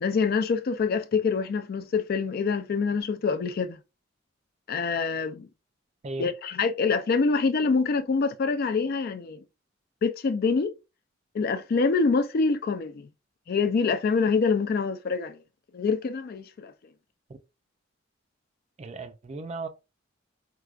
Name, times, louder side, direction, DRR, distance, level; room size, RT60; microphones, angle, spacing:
voice 1, 0.0-3.8 4.7-5.5 6.2-9.4 10.0-10.7 11.3-13.1 13.5-15.4 15.7-16.7, left 4 dB, 50° left, 0.3 m, -25 dB
voice 2, 18.8-19.7, right 3 dB, 35° right, 0.4 m, -36 dB
4.6 x 2.3 x 2.4 m
head